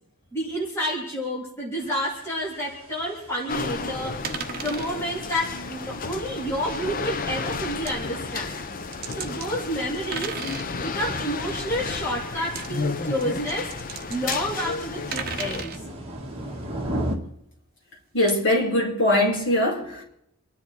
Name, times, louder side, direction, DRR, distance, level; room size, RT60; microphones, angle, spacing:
voice 1, 0.3-4.2 4.6-8.5 9.2-10.4 10.8-13.7 14.1-15.8, equal, 10° left, 3.4 m, -29 dB
sound 1, 1.8-17.2, right 1 dB, 25° right, 2.2 m, -40 dB
sound 2, 3.5-15.6, left 4 dB, 40° left, 0.6 m, -32 dB
sound 3, 4.2-4.9 7.0-7.1 7.9-8.0 8.8-9.5 9.9-10.7 12.4-12.7 13.2-15.8 18.3-18.4, right 6 dB, 45° right, 1.1 m, -34 dB
voice 2, 18.1-20.0, left 1 dB, 55° left, 4.6 m, -22 dB
27.5 x 10.5 x 4.6 m
head